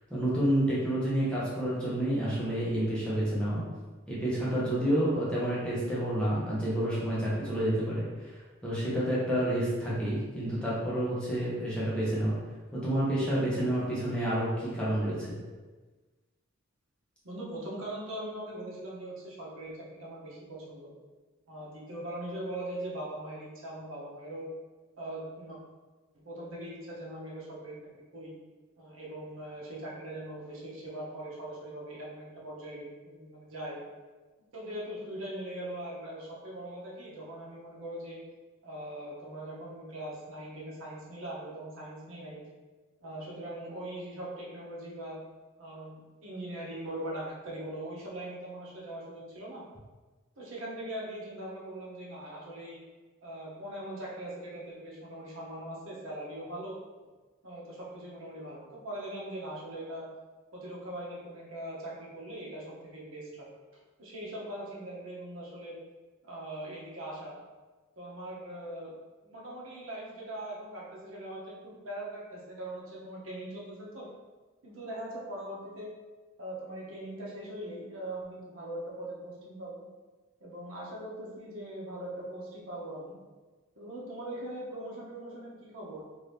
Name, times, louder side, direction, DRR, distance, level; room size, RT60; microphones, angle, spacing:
voice 1, 0.1-3.6 4.1-12.4 12.7-15.3, right 1 dB, 5° left, -9 dB, 0.8 m, -29 dB
voice 2, 17.2-20.9 21.5-24.5 25.0-25.6 26.2-27.8 28.1-28.4 28.8-33.8 34.5-38.2 38.6-42.4 43.0-45.2 45.6-49.7 50.4-52.8 53.2-56.7 57.4-60.1 60.5-63.5 64.0-65.8 66.2-67.4 68.0-68.9 69.2-74.1 74.6-75.9 76.4-79.8 80.4-83.1 83.8-86.0, right 1 dB, 75° right, -4 dB, 0.9 m, -41 dB
2.8 x 2.6 x 3.3 m, 1.3 s
head